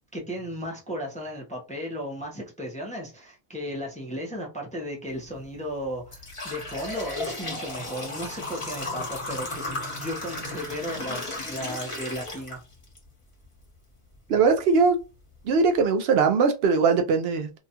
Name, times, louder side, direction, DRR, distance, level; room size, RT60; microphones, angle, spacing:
voice 1, 0.1-12.6, equal, 10° left, 0.6 m, -35 dB
sound 1, 5.2-5.3 5.8-13.0 13.4-13.5 14.4-14.5 15.0-15.1 15.5-15.8, left 2 dB, 30° left, 1.0 m, -35 dB
voice 2, 14.3-15.0 15.5-17.6, right 5 dB, 75° right, 0.8 m, -21 dB
2.7 x 2.2 x 2.7 m
omnidirectional pair, 1.1 m